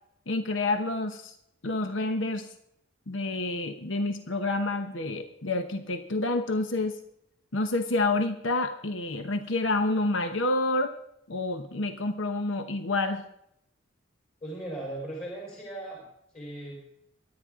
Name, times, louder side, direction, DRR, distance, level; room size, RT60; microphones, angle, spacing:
voice 1, 0.3-1.3 1.6-2.5 3.1-7.0 7.5-10.9 11.3-13.2, left 2 dB, 70° left, 7 dB, 1.0 m, -28 dB
voice 2, 14.4-16.0 16.3-16.8, right 1 dB, 35° left, -2 dB, 4.3 m, -37 dB
23.5 x 9.9 x 3.7 m, 0.76 s
head